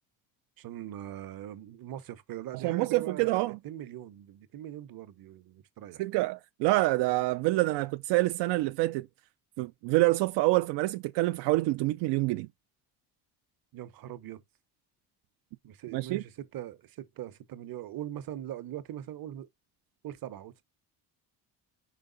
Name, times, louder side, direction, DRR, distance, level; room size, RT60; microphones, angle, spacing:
voice 1, 0.6-6.0 13.7-14.4 15.6-19.5 20.0-20.6, right 12 dB, 55° right, 1.0 m, -41 dB
voice 2, 2.6-3.6 6.0-9.1 9.6-12.5 15.9-16.2, right 19 dB, 90° right, 0.5 m, -27 dB
5.1 x 4.9 x 3.9 m
cardioid pair, 105°, 40 cm